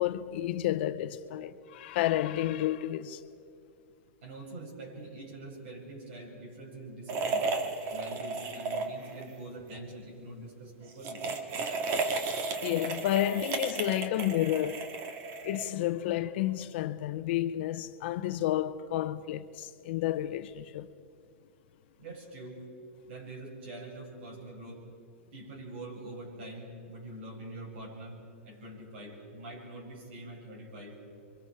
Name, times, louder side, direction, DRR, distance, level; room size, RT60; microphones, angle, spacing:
voice 1, 0.0-3.2 12.6-14.9 15.4-20.9, left 13 dB, 55° left, 0.9 m, -31 dB
voice 2, 4.2-7.5 7.9-11.3 22.0-22.6 23.0-24.9 25.3-31.0, right 1 dB, 60° right, 7.6 m, -44 dB
sound 1, 7.1-9.3 9.6-9.8 10.9-15.9, right 4 dB, 40° right, 2.0 m, -34 dB
28.0 x 24.0 x 4.9 m
hypercardioid pair, 145°, 7 cm